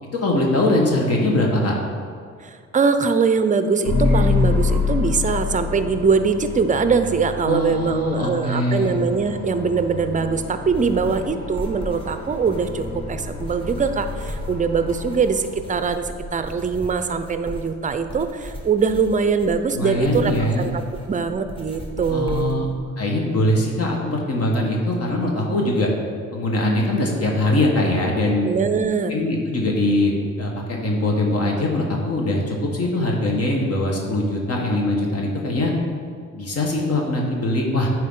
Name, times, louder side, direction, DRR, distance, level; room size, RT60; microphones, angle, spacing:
voice 1, 0.1-1.8 7.4-9.0 19.7-20.7 22.1-22.7 23.0-25.9 26.3-28.5 29.1-35.7 36.3-37.9, left 1 dB, 55° left, 0 dB, 1.3 m, -22 dB
voice 2, 2.4-20.7 21.1-22.7 28.4-29.2, right 5 dB, 25° right, 9 dB, 0.5 m, -22 dB
sound 1, 3.8-16.0, left 4 dB, 75° left, 1.8 m, -27 dB
sound 2, 10.7-22.8, right 1 dB, 15° left, 1.2 m, -37 dB
9.0 x 4.6 x 3.8 m, 2.1 s
cardioid pair, 90°, 30 cm